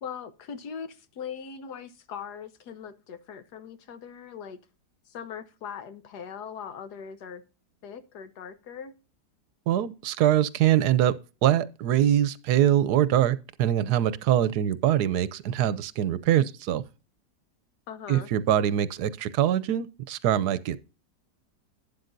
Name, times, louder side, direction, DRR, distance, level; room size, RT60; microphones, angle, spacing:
voice 1, 0.0-4.6 5.1-7.4 7.8-8.9 17.9-18.3, left 7 dB, 75° left, 1.5 m, -40 dB
voice 2, 9.7-11.2 11.4-16.8 18.1-20.8, right 11 dB, 80° right, 1.2 m, -23 dB
12.0 x 9.4 x 2.6 m
omnidirectional pair, 1.8 m